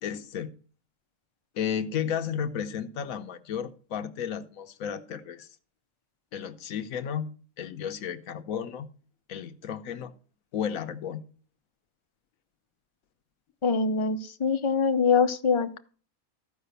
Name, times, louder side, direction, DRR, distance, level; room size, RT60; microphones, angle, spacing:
voice 1, 0.0-0.5 1.5-5.5 6.3-8.9 9.3-10.1 10.5-11.2, left 8 dB, 80° left, 1.2 m, -33 dB
voice 2, 13.6-15.8, left 5 dB, 40° left, 0.4 m, -24 dB
14.0 x 4.9 x 6.7 m
omnidirectional pair, 1.4 m